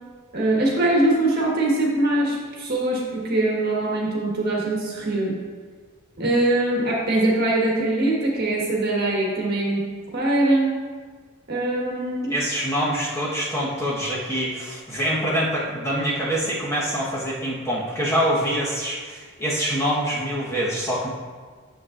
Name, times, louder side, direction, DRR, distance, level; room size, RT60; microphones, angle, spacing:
voice 1, 0.3-5.4 6.2-9.8 10.1-10.7 11.5-12.4, right 2 dB, 45° right, -3 dB, 1.5 m, -22 dB
voice 2, 12.3-21.1, equal, 15° left, -7 dB, 1.3 m, -25 dB
9.4 x 6.8 x 2.6 m, 1.5 s
head